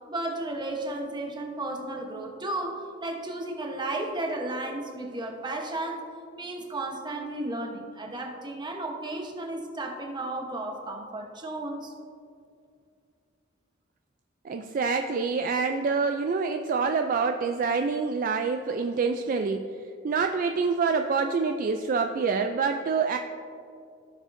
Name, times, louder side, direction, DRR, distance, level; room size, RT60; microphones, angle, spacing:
voice 1, 0.1-6.0 6.3-11.9, right 2 dB, 25° right, 2 dB, 1.0 m, -33 dB
voice 2, 14.5-19.6 20.0-23.2, right 5 dB, 45° right, 6 dB, 0.3 m, -26 dB
15.5 x 6.3 x 2.6 m, 2.5 s
head